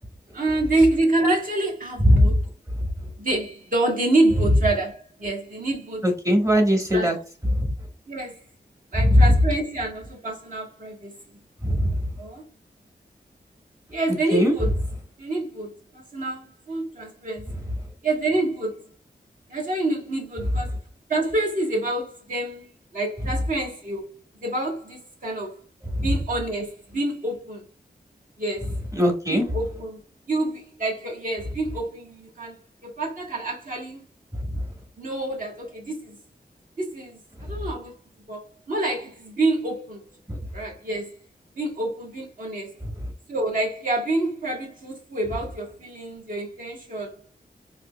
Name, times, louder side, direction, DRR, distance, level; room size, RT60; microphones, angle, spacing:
voice 1, 0.3-2.4 3.2-6.0 6.9-7.1 8.1-8.4 8.9-11.2 12.2-12.4 13.9-14.7 15.2-17.6 18.0-18.8 19.5-20.7 21.1-24.1 24.4-25.6 26.0-27.6 28.4-28.7 29.3-30.0 30.3-32.6 32.8-34.0 35.0-36.2 36.8-37.9 38.3-40.0 40.5-41.2 41.6-42.8 43.3-47.1, right 2 dB, 50° right, 1.4 m, -27 dB
voice 2, 6.0-7.2 7.5-7.7 9.0-9.4 11.6-12.0 14.3-14.5 25.9-26.1 28.9-29.5 34.5-34.6 40.3-40.4, equal, 20° right, 1.2 m, -19 dB
4.3 x 2.8 x 2.2 m
wide cardioid pair, 75°, 17 cm